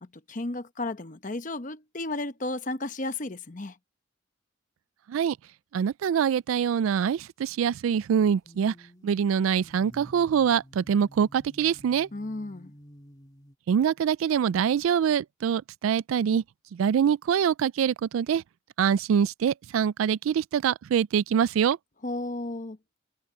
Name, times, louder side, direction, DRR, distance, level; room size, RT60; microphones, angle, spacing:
voice 1, 0.0-3.8 12.1-12.7 22.0-22.8, left 2 dB, 40° left, 0.9 m, -33 dB
voice 2, 5.7-8.7 9.0-12.1 13.7-16.4 16.7-18.4 18.8-21.8, right 8 dB, 80° right, 0.3 m, -24 dB
sound 1, 6.1-6.9 8.4-13.6, equal, 20° left, 1.8 m, -52 dB
head